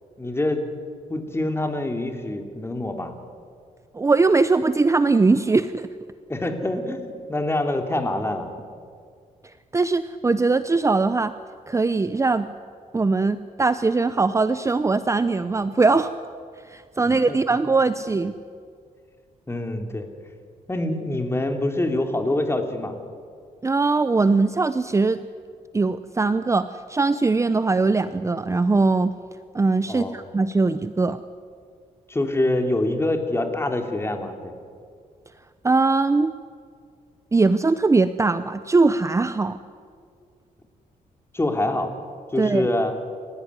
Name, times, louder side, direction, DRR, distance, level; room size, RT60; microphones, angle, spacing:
voice 1, 0.2-0.6 1.1-3.1 6.3-8.5 17.0-17.4 19.5-20.1 20.7-23.0 29.9-30.2 32.1-34.5 41.3-41.9 42.3-42.9, left 1 dB, 15° left, 5 dB, 3.2 m, -25 dB
voice 2, 3.9-5.9 9.7-11.3 11.7-12.5 12.9-16.1 16.7-18.3 23.6-25.2 25.7-29.1 29.5-31.2 35.6-36.3 37.3-39.6 42.4-42.7, right 3 dB, 20° right, 12 dB, 0.7 m, -21 dB
29.5 x 16.0 x 9.8 m, 2.2 s
cardioid pair, 105°, 15 cm